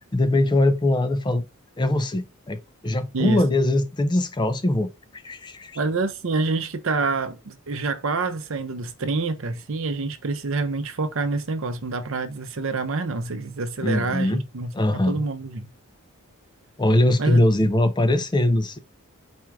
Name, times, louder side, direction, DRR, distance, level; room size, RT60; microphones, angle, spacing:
voice 1, 0.1-1.4 1.8-5.8 13.8-14.4 14.7-15.2 16.8-18.8, left 1 dB, 20° left, 0.4 m, -22 dB
voice 2, 3.1-3.4 5.7-15.7 17.2-17.4, right 3 dB, 60° right, 0.6 m, -27 dB
4.3 x 2.4 x 4.6 m
head